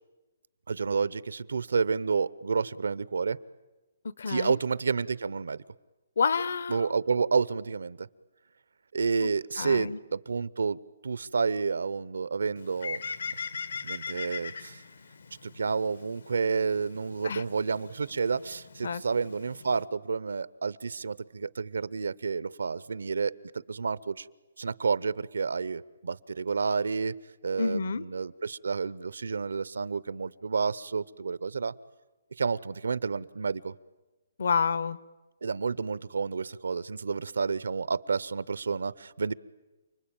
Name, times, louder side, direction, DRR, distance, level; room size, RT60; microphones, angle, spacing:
voice 1, 0.7-3.4 4.3-5.6 6.7-8.1 8.9-13.0 13.4-13.5 13.8-14.8 15.4-23.3 23.7-24.3 24.6-27.1 27.4-31.7 32.4-33.7 35.4-39.3, right 5 dB, 90° right, 19 dB, 0.8 m, -30 dB
voice 2, 4.2-4.6 6.2-6.9 9.2-9.3 9.6-10.0 17.2-17.4 18.8-19.0 27.6-28.1 34.4-35.0, left 5 dB, 60° left, 19 dB, 0.9 m, -28 dB
Bird, 12.6-19.9, left 5 dB, 80° left, 1.7 m, -41 dB
29.5 x 20.5 x 8.9 m, 1.1 s
hypercardioid pair, 175°, 0 cm